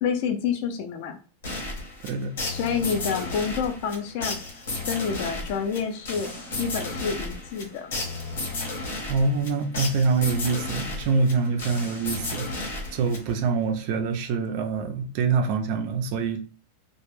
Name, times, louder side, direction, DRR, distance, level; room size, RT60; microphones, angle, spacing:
voice 1, 0.0-1.2 2.5-4.4 4.9-7.9, left 6 dB, 40° left, 0.4 m, -28 dB
sound 1, 1.4-13.6, left 2 dB, 80° left, 0.9 m, -33 dB
voice 2, 2.0-2.3 9.1-16.4, right 4 dB, 40° right, 0.3 m, -25 dB
2.1 x 2.1 x 3.0 m
supercardioid pair, 175°, 0 cm